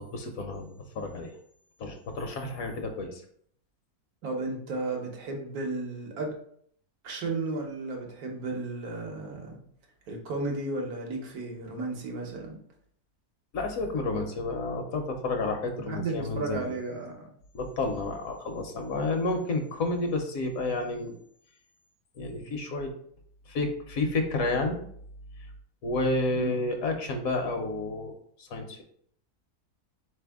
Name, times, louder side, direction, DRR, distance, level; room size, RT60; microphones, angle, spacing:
voice 1, 0.0-1.3 1.8-3.2 13.5-16.7 17.5-21.2 22.2-22.9 23.5-24.8 25.8-28.1 28.4-28.8, left 2 dB, 70° left, 4 dB, 1.1 m, -30 dB
voice 2, 4.2-6.3 7.0-9.6 10.1-12.6 15.8-17.3 26.4-26.6, right 3 dB, 80° right, 1 dB, 1.5 m, -34 dB
4.2 x 3.4 x 3.4 m, 0.65 s
omnidirectional pair, 1.6 m